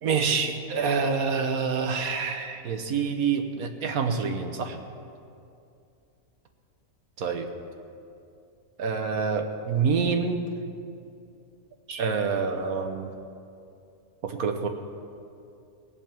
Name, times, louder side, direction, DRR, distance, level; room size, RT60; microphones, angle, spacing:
voice 1, 0.0-4.8 7.2-7.5 8.8-10.4 11.9-13.1 14.2-14.7, right 5 dB, 80° right, 5 dB, 1.6 m, -27 dB
18.0 x 7.2 x 8.9 m, 2.5 s
omnidirectional pair, 1.5 m